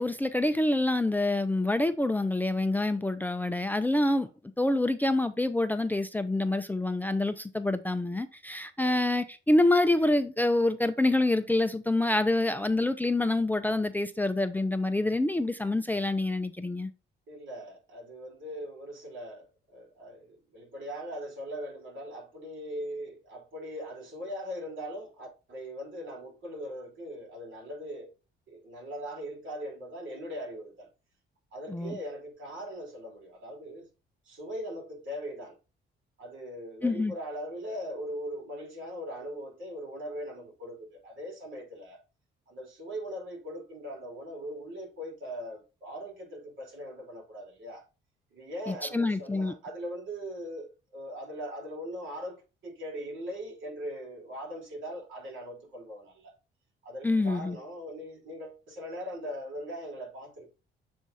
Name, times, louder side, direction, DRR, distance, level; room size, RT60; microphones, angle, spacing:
voice 1, 0.0-4.3 4.6-16.9 31.7-32.0 36.8-37.1 48.7-49.5 57.0-57.6, left 2 dB, 10° left, 0.5 m, -26 dB
voice 2, 17.3-28.1 28.5-30.9 31.5-33.9 34.3-35.6 36.2-42.0 42.5-47.8 48.3-56.3 56.8-60.5, equal, 70° right, 3.7 m, -40 dB
7.4 x 3.5 x 4.0 m
cardioid pair, 90°, 20 cm